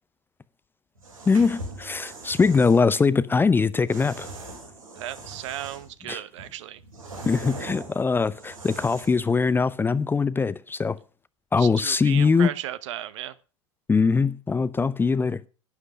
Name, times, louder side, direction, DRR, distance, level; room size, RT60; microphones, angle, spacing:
sound 1, 0.9-2.8 3.9-6.0 6.4-9.3, right 2 dB, 90° right, 5.1 m, -41 dB
voice 1, 1.3-4.3 6.1-6.2 7.3-11.0 11.5-12.5 13.9-15.4, left 5 dB, 10° left, 0.5 m, -22 dB
voice 2, 5.0-6.8 11.6-13.4, right 12 dB, 60° right, 1.0 m, -35 dB
11.5 x 9.8 x 5.4 m
figure-of-eight pair, 90°, 17 cm